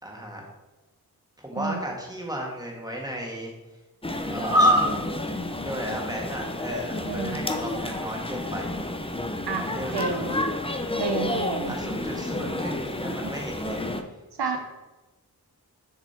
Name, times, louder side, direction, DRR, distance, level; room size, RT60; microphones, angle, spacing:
voice 1, 0.0-0.5 1.4-3.5 4.3-4.9 5.6-8.7 9.6-10.4 11.7-13.9, equal, 10° right, -1 dB, 1.8 m, -29 dB
sound 1, 4.0-14.0, left 1 dB, 15° left, 0.6 m, -31 dB
voice 2, 7.0-7.4 9.4-9.7 9.9-10.3 11.0-11.7 13.2-13.3 14.4-14.6, right 4 dB, 85° right, 5 dB, 0.9 m, -29 dB
6.9 x 4.9 x 4.4 m, 1.1 s
wide cardioid pair, 70°, 38 cm